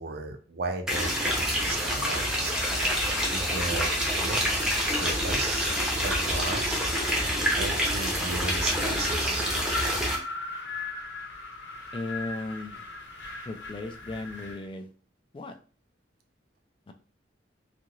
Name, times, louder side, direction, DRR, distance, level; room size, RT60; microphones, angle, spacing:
voice 1, 0.0-2.6 3.3-4.4 5.0-6.8 7.6-9.5, right 3 dB, 60° right, 6 dB, 0.5 m, -35 dB
sound 1, 0.9-10.2, equal, 5° right, 0.7 m, -27 dB
Wind, 8.2-14.7, left 3 dB, 90° left, 0.9 m, -38 dB
voice 2, 11.9-12.8 13.5-14.9 15.3-15.6 16.9-17.0, left 2 dB, 30° left, 6 dB, 0.3 m, -36 dB
2.7 x 2.5 x 3.0 m, 0.39 s
head